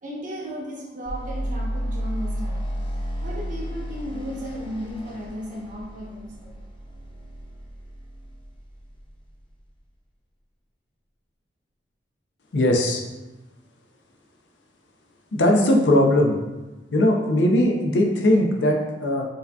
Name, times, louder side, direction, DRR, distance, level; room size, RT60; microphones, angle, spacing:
voice 1, 0.0-2.6 2.9-6.5, equal, 45° right, -3 dB, 0.8 m, -35 dB
sound 1, 1.1-9.2, equal, 30° left, 0.5 m, -32 dB
voice 2, 12.5-13.0 15.3-16.4 16.9-19.3, left 1 dB, 80° left, 1 dB, 0.5 m, -19 dB
4.6 x 2.7 x 2.2 m, 1.1 s
head